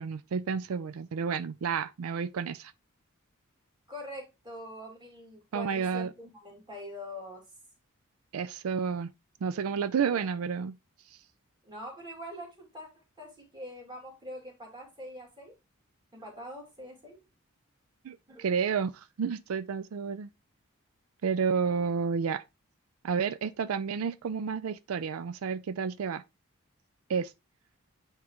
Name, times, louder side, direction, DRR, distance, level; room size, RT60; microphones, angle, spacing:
voice 1, 0.0-2.7 5.5-6.1 8.3-9.1 9.4-10.8 18.0-20.3 21.2-22.4 23.0-26.2 27.1-27.3, right 6 dB, 90° right, 0.4 m, -31 dB
voice 2, 3.9-7.4 10.0-10.4 11.6-15.5 16.1-17.2 18.3-18.5, equal, 20° right, 2.5 m, -44 dB
9.4 x 3.7 x 3.0 m
head